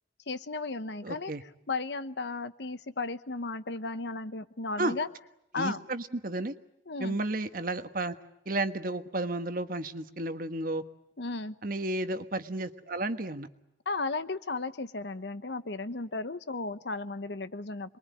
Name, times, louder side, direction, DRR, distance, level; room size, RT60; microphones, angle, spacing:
voice 1, 0.3-1.3 1.7-5.1 5.5-5.8 6.9-7.2 11.2-11.6 13.8-18.0, left 3 dB, 75° left, 12 dB, 1.1 m, -35 dB
voice 2, 1.0-1.4 4.8-5.0 5.5-6.5 7.0-8.1 8.4-10.8 11.6-13.5, right 2 dB, 55° right, 9 dB, 1.4 m, -32 dB
27.5 x 22.0 x 9.3 m, 0.85 s
head